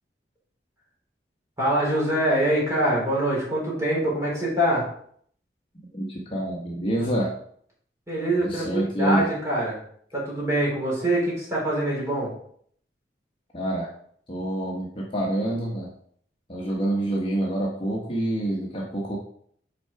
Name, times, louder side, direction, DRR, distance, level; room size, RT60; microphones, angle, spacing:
voice 1, 1.6-4.8 8.1-9.8 10.1-12.3, right 1 dB, 15° right, -5 dB, 3.1 m, -24 dB
voice 2, 5.8-7.3 8.4-9.3 13.5-13.9 14.3-15.9 16.5-19.2, right 1 dB, 30° left, -3 dB, 1.0 m, -27 dB
6.2 x 4.5 x 4.7 m, 0.62 s
head